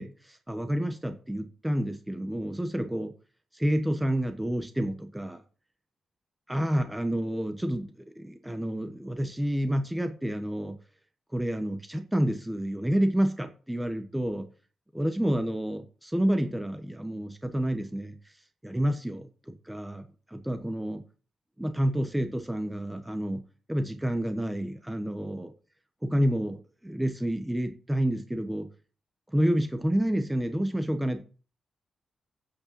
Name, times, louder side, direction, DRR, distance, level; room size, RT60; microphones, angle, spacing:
voice 1, 0.0-3.1 3.5-5.4 6.5-10.8 11.3-14.5 14.9-18.1 18.6-21.0 21.6-23.4 23.7-25.5 26.0-28.7 29.3-31.2, equal, 5° right, 1.1 m, -29 dB
8.4 x 6.5 x 7.5 m
wide cardioid pair, 150°, 0 cm